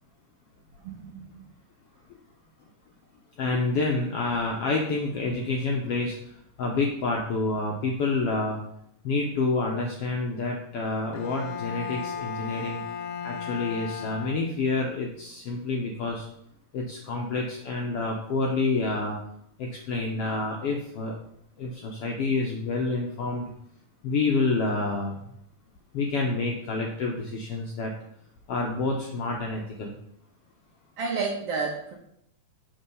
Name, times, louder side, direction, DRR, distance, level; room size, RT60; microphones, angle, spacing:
voice 1, 0.8-1.5 31.0-31.9, right 4 dB, 65° right, 0 dB, 1.7 m, -31 dB
voice 2, 3.4-6.1 6.6-8.6 9.0-12.8 13.2-16.3 16.7-19.2 19.6-21.1 21.6-23.5 24.0-25.2 25.9-27.9 28.5-29.9, left 3 dB, 75° left, 0 dB, 1.4 m, -28 dB
Bowed string instrument, 11.1-14.9, left 7 dB, 90° left, 2.3 m, -36 dB
7.4 x 4.4 x 5.4 m, 0.74 s
omnidirectional pair, 3.6 m